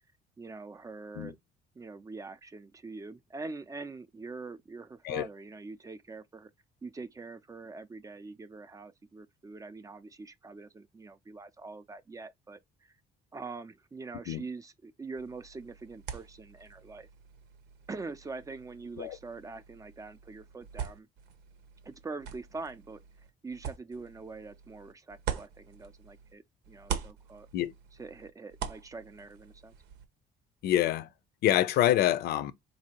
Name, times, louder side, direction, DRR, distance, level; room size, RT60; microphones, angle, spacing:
voice 1, 0.4-1.4 1.8-6.5 6.8-13.0 13.3-17.1 17.9-21.1 21.8-23.0 23.4-27.5 28.0-29.7, right 3 dB, 20° right, 0.4 m, -44 dB
sound 1, 15.2-26.3 26.6-30.1, right 8 dB, 85° right, 0.8 m, -43 dB
voice 2, 30.6-31.1 31.4-32.5, left 13 dB, 70° left, 0.5 m, -26 dB
4.1 x 2.7 x 2.9 m
cardioid pair, 110°, 17 cm